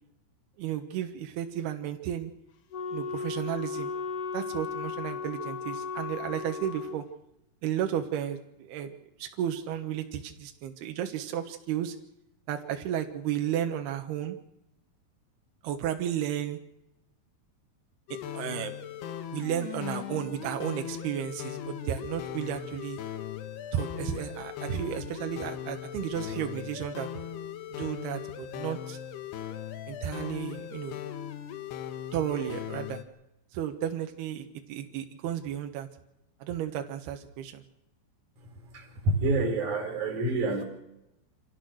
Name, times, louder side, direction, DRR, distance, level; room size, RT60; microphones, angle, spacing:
voice 1, 0.6-2.3 2.9-3.9 4.3-7.0 7.6-8.9 9.2-12.0 12.5-14.4 15.6-16.6 18.3-18.7 19.3-23.0 23.7-27.1 27.7-29.0 29.9-31.0 32.1-33.0 33.5-35.9 36.4-37.6, right 10 dB, 75° right, 5 dB, 3.3 m, -33 dB
Wind instrument woodwind instrument, 2.7-7.0, left 5 dB, 65° left, 1.4 m, -35 dB
sound 1, 18.1-33.0, left 10 dB, 80° left, 3.4 m, -39 dB
voice 2, 38.7-40.6, right 2 dB, 50° right, 3 dB, 4.9 m, -27 dB
27.0 x 16.5 x 6.4 m, 0.87 s
omnidirectional pair, 4.7 m